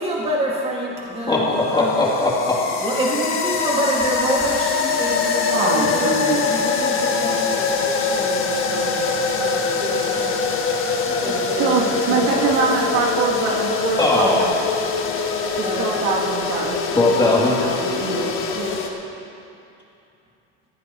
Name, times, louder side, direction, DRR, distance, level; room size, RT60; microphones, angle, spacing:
voice 1, 0.0-2.0 2.8-10.4 11.2-12.5 12.8-13.0 15.6-16.0, right 1 dB, 15° right, -4 dB, 2.2 m, -27 dB
sound 1, 0.9-18.6, left 7 dB, 80° left, 1.4 m, -35 dB
sound 2, 1.0-18.9, left 4 dB, 40° left, 1.8 m, -24 dB
voice 2, 1.3-2.6 11.0-11.3 12.1-12.3 14.0-14.5 16.9-17.6, left 2 dB, 15° left, -5 dB, 3.0 m, -19 dB
voice 3, 5.5-6.4 11.6-14.7 15.5-16.9 17.4-18.7, right 4 dB, 65° right, -4 dB, 2.9 m, -24 dB
20.0 x 16.0 x 3.1 m, 2.7 s
supercardioid pair, 130°, 33 cm